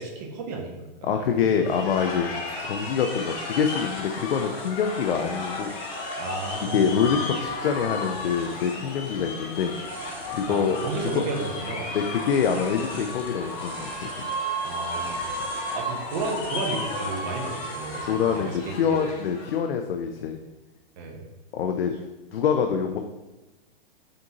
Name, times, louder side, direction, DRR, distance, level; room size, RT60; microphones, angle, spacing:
voice 1, 0.0-1.3 2.2-2.4 6.2-7.2 10.5-12.0 14.6-15.2 15.7-19.0 21.0-21.2, right 3 dB, 45° right, 1 dB, 0.8 m, -33 dB
voice 2, 1.0-2.3 2.6-5.7 6.6-9.7 10.3-11.3 11.9-14.3 18.1-20.4 21.5-21.9 22.3-23.0, left 7 dB, 80° left, 5 dB, 0.4 m, -25 dB
sound 1, 1.6-19.6, left 1 dB, 40° left, 0.9 m, -34 dB
sound 2, 2.1-19.1, right 1 dB, 5° right, 0.5 m, -46 dB
5.1 x 2.6 x 2.8 m, 1.1 s
hypercardioid pair, 120°, 30 cm